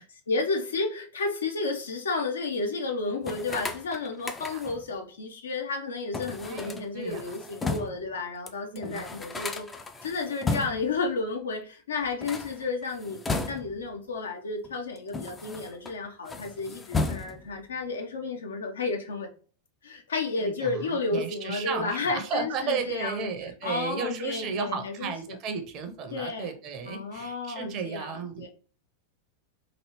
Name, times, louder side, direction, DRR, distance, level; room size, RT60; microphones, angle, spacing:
voice 1, 0.0-9.7 10.0-13.2 13.5-19.3 19.8-23.3 23.6-25.4 26.1-26.5 26.9-28.5, left 3 dB, 70° left, 0.6 m, -32 dB
sound 1, 3.2-4.9 6.1-8.1 8.5-8.6 8.8-11.0 12.1-13.9 14.6-15.9 16.2-17.6, left 3 dB, 15° left, 0.4 m, -34 dB
voice 2, 6.4-7.3 8.7-9.0 20.4-28.5, right 5 dB, 35° right, 0.6 m, -34 dB
3.0 x 2.6 x 3.0 m
figure-of-eight pair, 90°, 0 cm